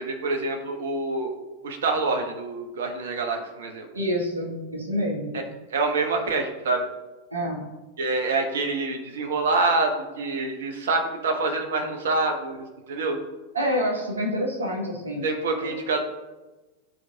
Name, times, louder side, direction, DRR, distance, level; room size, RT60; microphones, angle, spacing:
voice 1, 0.0-1.3 1.6-3.9 5.3-5.4 5.7-6.9 8.0-13.2 15.2-16.0, right 3 dB, 60° right, 4 dB, 1.1 m, -26 dB
voice 2, 3.9-5.4 7.3-7.6 13.5-15.3 15.6-15.8, equal, 75° right, 0 dB, 1.4 m, -27 dB
10.5 x 4.7 x 2.8 m, 1.2 s
figure-of-eight pair, 90°, 0 cm